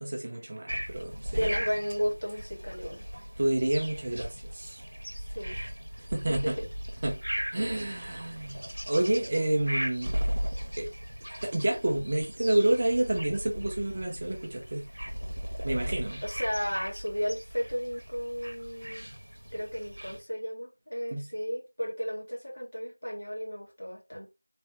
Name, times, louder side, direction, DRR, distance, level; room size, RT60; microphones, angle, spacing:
voice 1, 0.0-1.5 3.4-4.8 6.1-6.6 7.0-7.2 7.5-8.6 8.9-10.2 10.8-10.9 11.4-14.9 15.6-16.2 21.1-21.3, right 1 dB, 20° right, 0.4 m, -29 dB
sound 1, 0.7-20.2, equal, 65° right, 0.9 m, -37 dB
voice 2, 1.3-3.1 5.3-5.6 6.3-6.7 16.2-19.1 19.5-24.3, equal, 60° left, 2.1 m, -33 dB
3.4 x 3.2 x 2.8 m
figure-of-eight pair, 175°, 0 cm